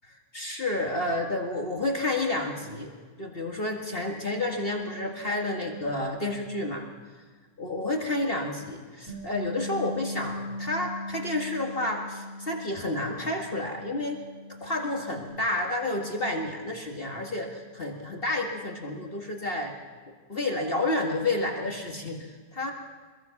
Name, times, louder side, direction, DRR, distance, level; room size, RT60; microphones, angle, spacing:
voice 1, 0.3-2.9 3.2-6.9 7.6-14.2 14.6-19.7 20.1-22.7, left 2 dB, 35° left, 1 dB, 2.0 m, -30 dB
Bass guitar, 9.1-15.3, left 1 dB, 80° right, 6.2 m, -39 dB
24.5 x 22.0 x 5.9 m, 1.5 s
omnidirectional pair, 1.8 m